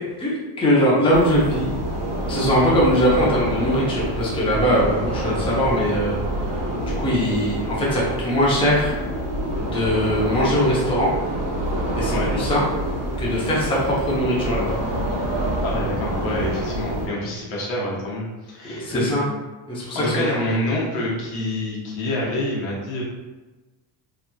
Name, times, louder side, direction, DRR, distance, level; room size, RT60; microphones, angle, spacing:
voice 1, 0.2-1.7 2.3-6.2 6.8-8.9 9.6-11.1 12.0-12.6 13.2-14.8 18.6-19.2 19.7-20.6, equal, 10° left, -6 dB, 0.7 m, -21 dB
sound 1, 1.1-17.1, right 1 dB, 45° right, 0.9 m, -27 dB
voice 2, 15.6-19.3 19.9-23.0, left 1 dB, 70° left, -4 dB, 1.0 m, -27 dB
3.0 x 2.5 x 2.2 m, 1.2 s
cardioid pair, 125°, 45 cm